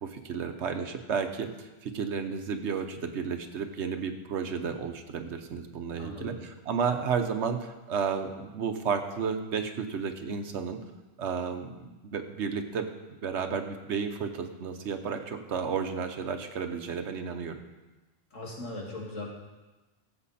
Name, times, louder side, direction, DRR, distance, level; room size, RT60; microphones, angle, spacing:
voice 1, 0.0-6.3 6.7-10.8 11.2-17.5, right 6 dB, 65° right, 6 dB, 1.2 m, -32 dB
voice 2, 5.9-6.4 18.3-19.3, left 2 dB, 80° left, -2 dB, 2.5 m, -39 dB
15.0 x 7.2 x 4.2 m, 1.1 s
omnidirectional pair, 1.3 m